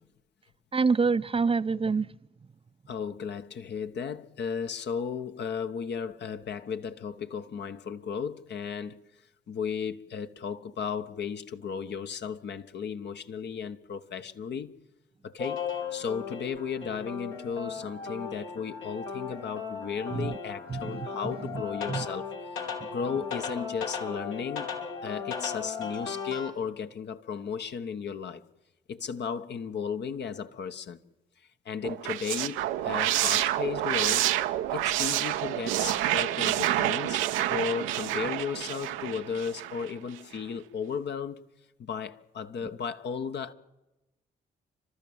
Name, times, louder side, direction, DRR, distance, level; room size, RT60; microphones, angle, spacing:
voice 1, 0.7-2.1 20.1-20.3 20.7-21.1 21.9-22.1, right 4 dB, 30° right, 0.6 m, -26 dB
voice 2, 2.9-9.0 9.5-14.7 15.2-15.6 15.9-22.3 22.9-24.7 25.0-28.4 28.9-31.0 31.6-34.3 34.7-37.2 37.5-41.4 41.8-43.5, left 6 dB, 60° left, 1.3 m, -35 dB
sound 1, 15.4-26.5, left 6 dB, 80° left, 2.8 m, -36 dB
sound 2, 31.8-39.9, right 13 dB, 85° right, 0.7 m, -28 dB
30.0 x 12.5 x 7.3 m
supercardioid pair, 50°, 20 cm